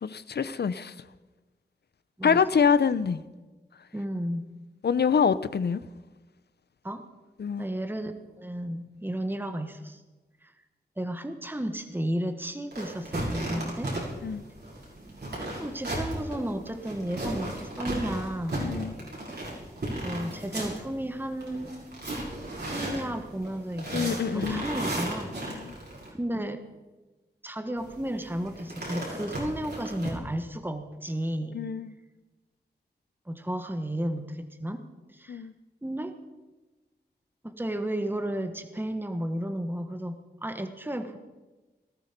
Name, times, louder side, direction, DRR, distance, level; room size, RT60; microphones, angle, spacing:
voice 1, 0.0-0.9 2.2-3.2 4.8-5.8 7.4-7.7 14.2-14.4 18.6-18.9 23.9-24.7 25.6-25.7 31.5-31.9 35.3-35.5, left 6 dB, 75° left, 0.7 m, -25 dB
voice 2, 3.9-4.5 6.8-7.0 7.6-10.0 10.4-10.5 11.0-13.9 15.6-18.6 20.0-21.8 22.7-25.6 26.1-26.6 27.4-31.6 33.3-34.8 35.1-35.4 35.8-36.1 37.4-41.2, right 1 dB, 10° right, 1.5 m, -33 dB
sound 1, 12.7-26.1 27.8-30.1, right 1 dB, 70° right, 6.1 m, -35 dB
19.0 x 12.5 x 5.3 m
cardioid pair, 50°, 17 cm